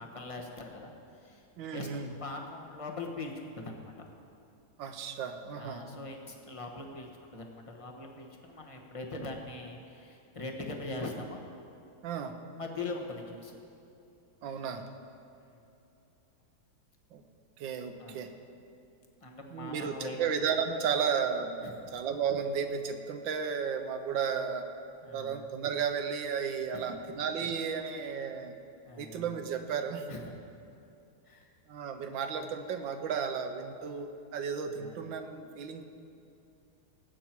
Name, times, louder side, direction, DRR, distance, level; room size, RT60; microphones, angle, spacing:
voice 1, 0.0-1.5 1.7-4.1 5.6-11.4 12.5-13.6 15.4-15.5 18.0-18.2 19.2-20.2 21.6-21.7 25.0-25.6 26.7-27.0 27.9-28.2 28.8-29.3 30.1-30.5 31.2-31.5 34.8-35.0, left 2 dB, 25° left, 1 dB, 0.9 m, -42 dB
voice 2, 1.6-2.1 4.8-5.8 12.0-12.3 14.4-14.8 17.1-17.2 17.6-18.3 19.5-21.5 21.9-24.7 25.1-28.5 29.0-30.1 31.7-35.8, right 6 dB, 75° right, 7 dB, 1.5 m, -33 dB
19.0 x 8.5 x 4.5 m, 2.7 s
omnidirectional pair, 2.2 m